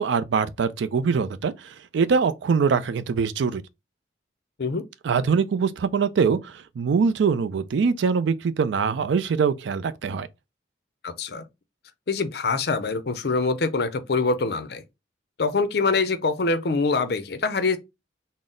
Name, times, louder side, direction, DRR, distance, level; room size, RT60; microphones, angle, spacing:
voice 1, 0.0-3.6 5.0-10.3, right 5 dB, 75° right, 0.4 m, -23 dB
voice 2, 11.0-11.4 12.1-14.8 15.4-17.8, left 3 dB, 60° left, 0.5 m, -24 dB
3.9 x 2.0 x 3.7 m
head